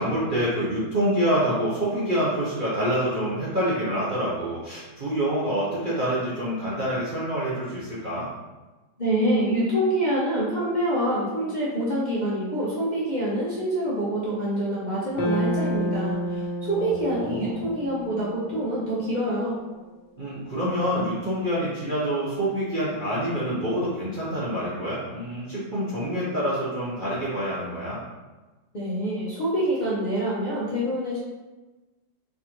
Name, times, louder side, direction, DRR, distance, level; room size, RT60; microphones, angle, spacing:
voice 1, 0.0-8.3 16.7-17.6 20.2-28.0, equal, 50° right, -9 dB, 0.6 m, -27 dB
voice 2, 9.0-19.6 28.7-31.2, right 1 dB, 40° left, -10 dB, 0.6 m, -26 dB
sound 1, 15.2-19.5, equal, 70° left, 1.2 m, -30 dB
4.3 x 2.7 x 2.9 m, 1.2 s
omnidirectional pair, 1.8 m